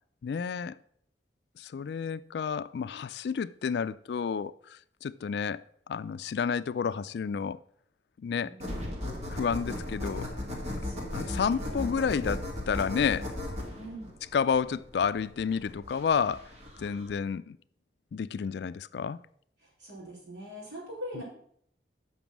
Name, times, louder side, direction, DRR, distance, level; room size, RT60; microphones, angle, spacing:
voice 1, 0.2-0.8 1.6-7.6 8.2-8.5 9.3-10.3 11.1-13.3 14.3-16.5 16.8-17.6 18.1-19.2 21.2-21.3, left 6 dB, 70° left, 0.3 m, -30 dB
voice 2, 8.4-9.0 10.8-12.1 13.8-14.1 19.6-21.2, equal, 80° right, 4.2 m, -43 dB
sound 1, 8.6-17.1, left 1 dB, 40° right, 2.0 m, -37 dB
7.2 x 5.9 x 5.9 m
head